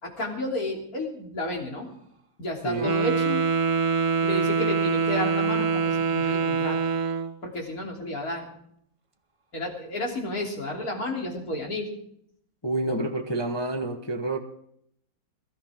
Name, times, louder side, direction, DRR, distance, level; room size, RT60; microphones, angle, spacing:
voice 1, 0.0-1.9 2.4-3.5 4.2-6.8 7.4-8.5 9.5-11.9, left 1 dB, 50° left, 0 dB, 3.7 m, -31 dB
voice 2, 2.6-2.9 12.6-14.4, right 2 dB, 20° left, 4 dB, 0.9 m, -28 dB
Wind instrument woodwind instrument, 2.7-7.3, right 5 dB, 35° right, 0.5 m, -24 dB
21.5 x 13.5 x 3.6 m, 0.70 s
omnidirectional pair, 2.1 m